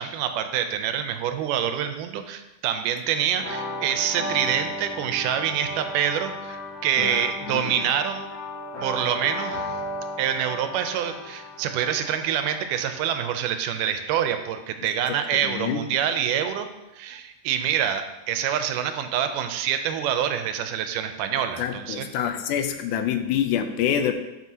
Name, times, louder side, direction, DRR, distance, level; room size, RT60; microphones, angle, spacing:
voice 1, 0.0-8.3 8.8-9.6 10.2-16.7 16.9-22.1, right 9 dB, 90° right, 8 dB, 2.2 m, -26 dB
sound 1, 3.4-13.0, left 1 dB, 50° left, 1.0 m, -35 dB
voice 2, 7.0-7.8 15.5-15.8 21.6-24.1, left 9 dB, 85° left, 7 dB, 2.0 m, -26 dB
12.0 x 6.0 x 2.8 m, 0.97 s
omnidirectional pair, 3.7 m